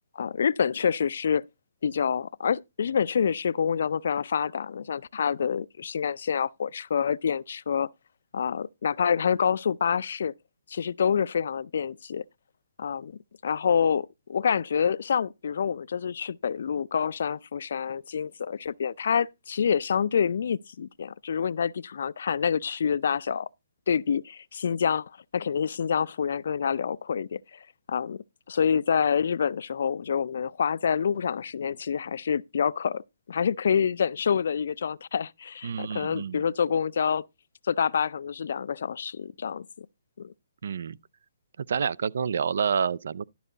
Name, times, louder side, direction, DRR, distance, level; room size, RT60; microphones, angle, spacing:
voice 1, 0.2-1.4 1.8-7.9 8.3-10.3 10.7-12.2 12.8-23.5 23.9-37.3 37.7-39.9 40.2-40.3, left 7 dB, 65° left, 0.4 m, -27 dB
voice 2, 35.6-36.4 40.6-41.0 41.7-43.2, right 6 dB, 70° right, 0.4 m, -28 dB
12.0 x 5.5 x 3.9 m
hypercardioid pair, 150°, 0 cm